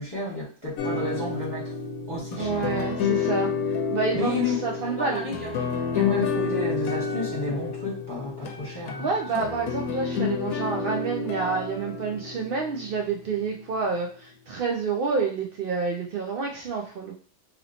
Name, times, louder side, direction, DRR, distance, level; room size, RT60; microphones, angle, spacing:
voice 1, 0.0-1.7 2.1-2.9 4.1-4.6 4.8-9.1 9.4-9.5, left 2 dB, 15° left, -8 dB, 1.6 m, -31 dB
sound 1, 0.8-13.2, left 5 dB, 80° left, 1.0 m, -30 dB
voice 2, 2.4-5.3 9.0-17.1, right 5 dB, 80° right, 1 dB, 0.5 m, -29 dB
3.0 x 2.9 x 2.7 m, 0.39 s
omnidirectional pair, 1.5 m